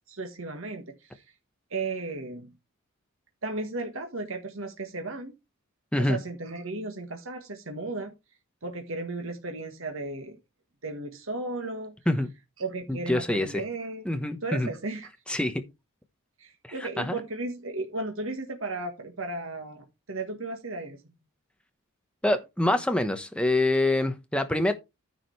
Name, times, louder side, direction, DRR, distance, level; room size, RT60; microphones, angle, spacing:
voice 1, 0.1-1.2 1.7-2.5 3.4-5.3 6.0-8.1 8.6-10.4 10.8-11.9 12.6-14.1 14.4-15.1 16.4-21.0, right 2 dB, 65° right, 1.6 m, -35 dB
voice 2, 12.9-13.6 14.0-14.7 15.3-15.6 16.6-17.2 22.2-24.7, left 1 dB, 5° left, 1.1 m, -26 dB
9.9 x 5.0 x 4.7 m
head